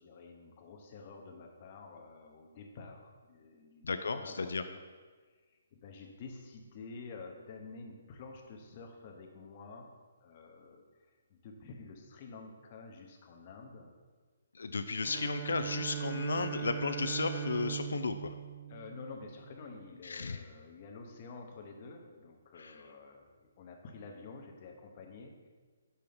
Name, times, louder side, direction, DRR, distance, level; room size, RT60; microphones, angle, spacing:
voice 1, 0.0-4.8 5.5-9.9 10.2-13.9 18.7-25.5, left 4 dB, 35° left, 2 dB, 0.8 m, -49 dB
voice 2, 3.8-4.6 14.5-18.3 20.0-20.4 22.6-22.7, left 4 dB, 85° left, 9 dB, 0.4 m, -34 dB
Bowed string instrument, 15.0-19.7, right 10 dB, 25° right, 0.4 m, -40 dB
5.6 x 4.4 x 5.1 m, 1.5 s
hypercardioid pair, 165°, 0 cm